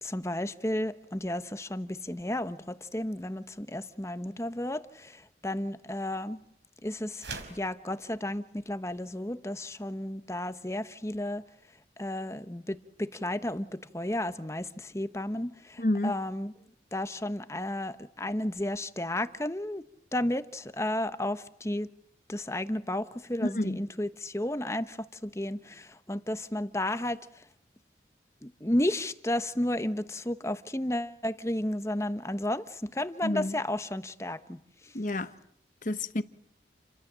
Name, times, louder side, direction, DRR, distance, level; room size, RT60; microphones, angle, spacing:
voice 1, 0.0-6.4 6.8-11.4 12.0-16.5 16.9-19.8 20.1-21.9 22.3-27.2 28.4-34.6, left 1 dB, 15° left, 1.0 m, -33 dB
sound 1, 7.1-7.7, right 4 dB, 90° right, 4.8 m, -40 dB
voice 2, 15.8-16.1 23.4-23.8 33.2-33.5 34.9-35.3 35.8-36.2, left 1 dB, 45° left, 1.2 m, -29 dB
29.5 x 24.5 x 7.6 m
head